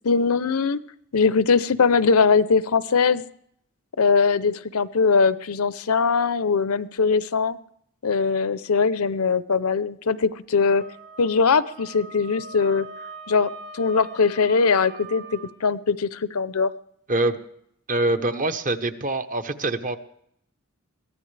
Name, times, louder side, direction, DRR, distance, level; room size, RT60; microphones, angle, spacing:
voice 1, 0.0-0.8 1.1-3.2 4.0-7.6 8.0-10.9 11.2-12.9 13.3-16.7, left 5 dB, 80° left, 15 dB, 0.7 m, -21 dB
Wind instrument woodwind instrument, 10.7-15.5, right 3 dB, 60° right, 3.6 m, -42 dB
voice 2, 17.9-20.0, right 2 dB, 40° right, 9 dB, 1.0 m, -24 dB
22.5 x 15.5 x 3.3 m, 0.69 s
head